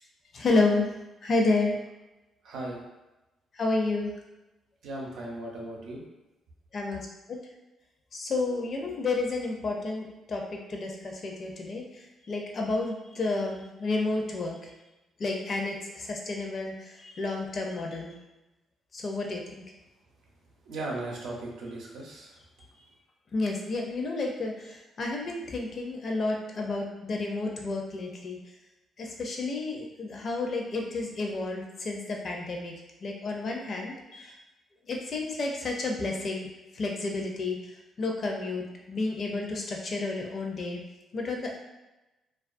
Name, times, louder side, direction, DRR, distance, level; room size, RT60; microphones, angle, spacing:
voice 1, 0.3-0.9 1.2-1.7 3.5-4.1 6.7-7.4 8.1-14.6 15.2-18.1 18.9-19.6 23.3-28.4 29.0-32.7 33.0-34.4 34.9-36.5 36.7-37.6 38.0-40.8 41.1-41.6, left 3 dB, 50° left, 1 dB, 0.5 m, -30 dB
voice 2, 2.4-2.8 4.8-6.0 20.6-22.4, right 2 dB, 80° right, -2 dB, 0.6 m, -37 dB
2.3 x 2.3 x 2.5 m, 1.0 s
cardioid pair, 90°, 0 cm